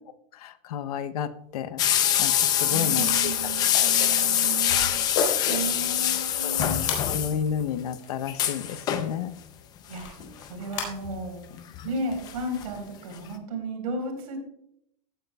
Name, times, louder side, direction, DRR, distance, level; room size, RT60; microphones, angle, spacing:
voice 1, 0.3-3.3 3.7-4.1 4.4-4.9 6.4-9.3, left 8 dB, 70° left, 12 dB, 0.8 m, -32 dB
sound 1, 1.5-1.6 1.8-2.1 2.8-3.2 3.8-3.9 4.2-5.8 6.4-6.5 6.8-7.1 7.9-8.2 9.9-10.9 12.1-12.4, left 5 dB, 55° left, 3.9 m, -33 dB
sound 2, 1.8-7.6 7.9-8.0 8.3-9.1 10.2-10.5 11.0-12.3 12.6-12.7 13.1-13.2, left 10 dB, 20° left, 0.6 m, -24 dB
voice 2, 2.7-4.9 5.5-6.9 9.9-10.1 10.5-11.4 11.8-14.4, right 2 dB, 70° right, 3 dB, 4.0 m, -33 dB
15.5 x 9.2 x 2.3 m, 0.77 s
supercardioid pair, 170°, 20 cm